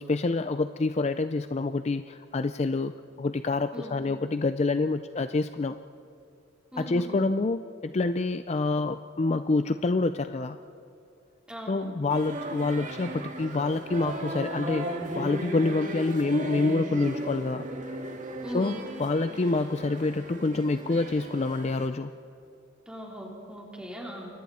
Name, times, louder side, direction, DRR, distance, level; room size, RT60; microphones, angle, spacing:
voice 1, 0.0-2.9 3.2-5.8 6.8-10.6 11.7-17.7 18.5-22.1, left 3 dB, 35° left, 10 dB, 0.4 m, -27 dB
voice 2, 3.7-4.0 6.7-7.2 11.5-11.9 18.4-18.8 22.9-24.3, equal, 5° right, -2 dB, 3.8 m, -39 dB
sound 1, 12.1-21.9, right 1 dB, 40° right, 1.9 m, -36 dB
29.0 x 23.5 x 4.3 m, 2.6 s
head